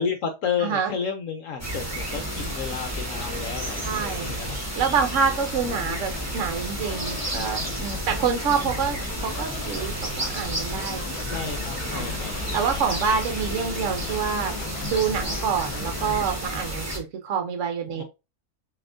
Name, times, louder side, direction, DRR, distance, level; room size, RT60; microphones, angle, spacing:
voice 1, 0.0-4.6 7.9-8.1 11.3-12.4 17.9-18.0, left 6 dB, 65° left, 1.0 m, -31 dB
voice 2, 0.6-0.9 3.8-4.4 4.8-11.0 11.9-12.1 12.5-14.5 14.8-18.0, right 6 dB, 65° right, 0.9 m, -27 dB
sound 1, 1.6-17.0, right 1 dB, 10° right, 1.3 m, -31 dB
Domestic sounds home sounds, 2.0-15.4, equal, 5° left, 1.8 m, -43 dB
sound 2, 5.4-16.3, left 6 dB, 90° left, 1.1 m, -39 dB
6.7 x 2.8 x 2.6 m
omnidirectional pair, 1.5 m